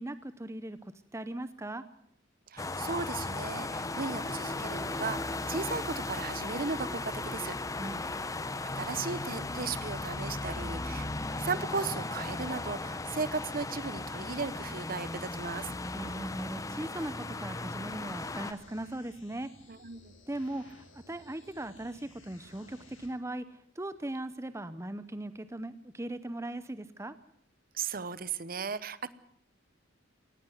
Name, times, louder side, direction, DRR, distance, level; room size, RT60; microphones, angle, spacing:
voice 1, 0.0-1.8 7.7-8.0 15.9-19.5 20.3-27.2, right 1 dB, 15° right, 13 dB, 0.7 m, -39 dB
voice 2, 2.5-7.6 8.6-11.1 11.4-15.7 19.7-20.1 27.7-29.1, right 4 dB, 45° right, 16 dB, 0.9 m, -36 dB
sound 1, 2.6-18.5, left 2 dB, 15° left, 0.8 m, -36 dB
sound 2, 18.1-23.1, left 2 dB, 65° left, 7.8 m, -57 dB
18.5 x 15.5 x 9.4 m, 0.70 s
head